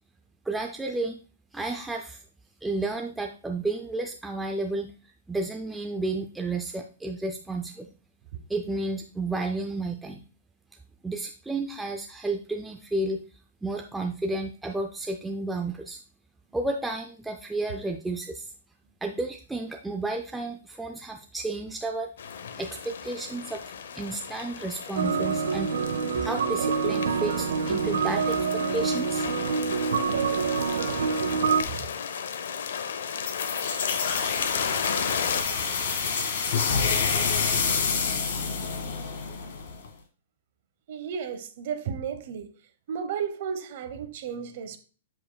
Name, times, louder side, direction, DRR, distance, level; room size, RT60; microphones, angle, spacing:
voice 1, 0.5-1.2 1.5-2.2 2.6-4.9 5.3-7.9 8.5-10.2 11.0-13.2 13.6-16.0 16.5-18.5 19.0-22.1 22.6-25.9 26.2-29.3, right 2 dB, 5° right, 0.4 m, -32 dB
sound 1, 22.2-35.4, left 7 dB, 65° left, 0.7 m, -34 dB
sound 2, 25.0-31.6, right 5 dB, 80° right, 0.6 m, -26 dB
sound 3, 33.3-39.9, left 5 dB, 50° left, 1.5 m, -27 dB
voice 2, 40.9-42.6 42.9-44.8, right 7 dB, 40° right, 0.9 m, -33 dB
7.6 x 7.5 x 2.3 m
hypercardioid pair, 175°, 0 cm